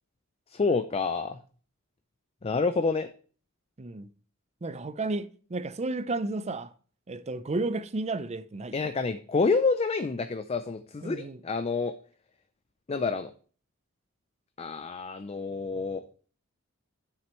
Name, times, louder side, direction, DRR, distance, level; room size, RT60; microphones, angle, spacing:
voice 1, 0.5-1.4 2.4-3.1 8.7-11.9 12.9-13.3 14.6-16.0, left 4 dB, 30° left, 0.4 m, -28 dB
voice 2, 3.8-4.1 4.6-6.7 7.1-8.8 11.0-11.4, right 2 dB, 30° right, 0.6 m, -32 dB
9.2 x 7.5 x 3.0 m
head